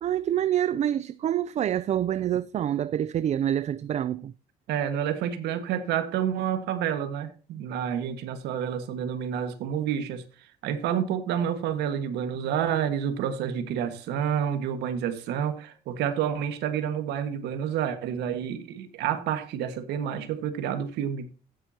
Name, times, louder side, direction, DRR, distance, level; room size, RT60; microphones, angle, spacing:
voice 1, 0.0-4.3, right 10 dB, 40° right, 0.4 m, -26 dB
voice 2, 4.7-21.3, right 9 dB, 85° right, 1.6 m, -29 dB
16.0 x 7.8 x 2.8 m
cardioid pair, 110°, 17 cm